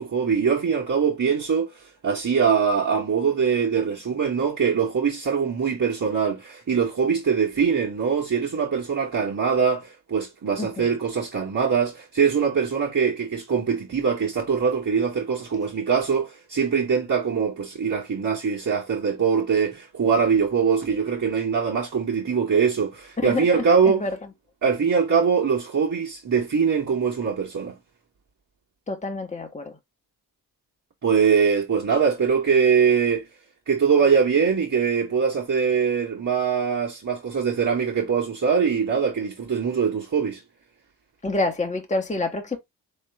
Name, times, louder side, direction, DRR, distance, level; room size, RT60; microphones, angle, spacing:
voice 1, 0.0-1.7 2.0-24.0 24.6-27.8 31.0-33.3 33.7-40.4, right 6 dB, 40° right, 1.8 m, -22 dB
voice 2, 10.6-10.9 23.2-24.2 28.9-29.8 41.2-42.6, left 2 dB, 15° left, 1.3 m, -28 dB
3.6 x 3.3 x 3.6 m
hypercardioid pair, 40°, 46 cm